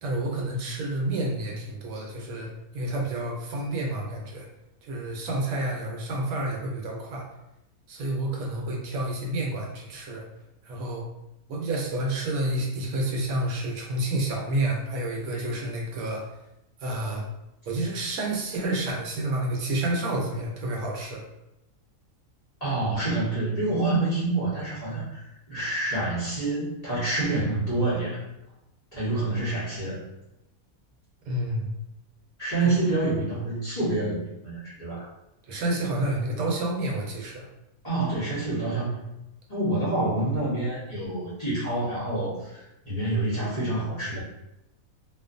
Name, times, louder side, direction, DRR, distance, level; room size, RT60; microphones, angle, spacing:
voice 1, 0.0-2.5 2.7-4.5 4.8-7.2 7.9-10.2 10.6-11.0 11.5-16.2 16.8-17.2 17.7-21.2 31.2-31.7 35.5-37.5, right 1 dB, 75° right, -1 dB, 1.0 m, -29 dB
voice 2, 22.6-28.2 28.9-30.0 32.4-35.1 37.8-39.0 39.5-44.2, right 2 dB, 30° left, -11 dB, 0.9 m, -27 dB
2.5 x 2.4 x 2.4 m, 0.88 s
omnidirectional pair, 1.6 m